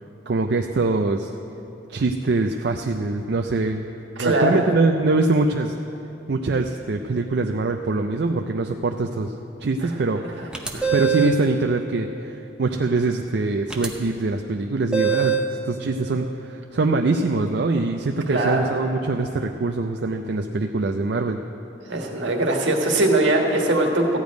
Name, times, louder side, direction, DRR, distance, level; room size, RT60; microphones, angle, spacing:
voice 1, 0.3-1.3 1.9-3.8 4.2-5.8 6.3-9.3 9.6-10.3 10.9-21.4, right 3 dB, 60° right, 5 dB, 0.4 m, -23 dB
voice 2, 4.2-4.6 9.8-9.9 10.4-10.5 10.7-10.9 18.3-18.6 21.8-24.2, right 2 dB, 75° right, 1 dB, 1.5 m, -21 dB
sound 1, 10.5-11.4 13.7-13.9 14.9-15.5, right 6 dB, 5° right, 0.7 m, -22 dB
14.5 x 5.2 x 9.2 m, 2.8 s
head